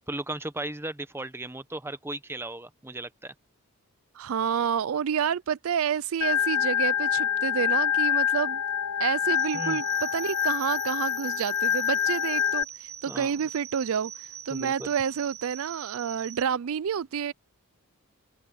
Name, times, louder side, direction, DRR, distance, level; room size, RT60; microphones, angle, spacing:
voice 1, 0.1-3.3 9.5-9.8 13.1-13.3 14.5-14.9, right 1 dB, 10° right, 0.9 m, -36 dB
voice 2, 4.2-8.6 9.0-14.1 14.5-17.3, right 7 dB, 65° right, 0.4 m, -29 dB
Organ, 6.2-12.6, left 9 dB, 85° left, 0.5 m, -26 dB
sound 1, 9.3-16.4, right 10 dB, 80° right, 1.4 m, -43 dB
open air
head